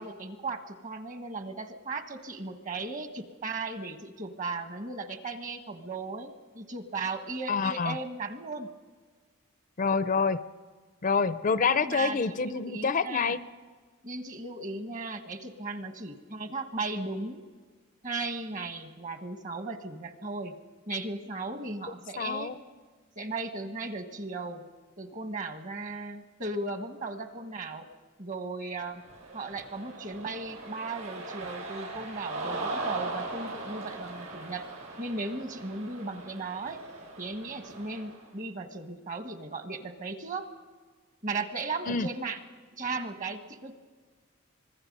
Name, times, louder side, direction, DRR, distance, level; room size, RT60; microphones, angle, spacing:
voice 1, 0.0-8.7 11.7-13.3 14.0-17.4 18.0-20.6 20.9-22.5 23.2-24.6 25.0-27.9 28.2-29.0 29.3-34.7 35.0-36.8 37.2-40.5 41.2-42.4 42.8-43.7, right 3 dB, 40° right, 8 dB, 1.3 m, -36 dB
voice 2, 7.5-8.0 9.8-10.4 11.0-13.4 22.2-22.5 41.9-42.1, left 5 dB, 40° left, 13 dB, 0.5 m, -27 dB
Cheering, 29.0-38.2, right 2 dB, 70° right, 5.5 m, -39 dB
25.5 x 21.0 x 5.4 m, 1.5 s
head